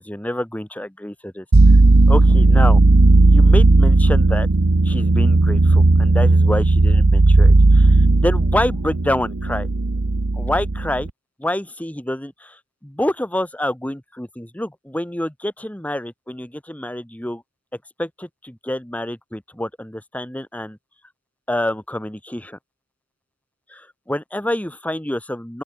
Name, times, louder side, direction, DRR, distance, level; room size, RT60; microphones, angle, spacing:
voice 1, 0.0-1.4 2.1-2.8 3.3-4.5 4.8-9.7 10.3-11.1 11.4-17.4 18.0-20.8 21.5-22.6 23.7-25.6, left 1 dB, 5° left, 1.1 m, -27 dB
sound 1, 1.5-11.1, right 2 dB, 70° right, 1.0 m, -14 dB
open air
head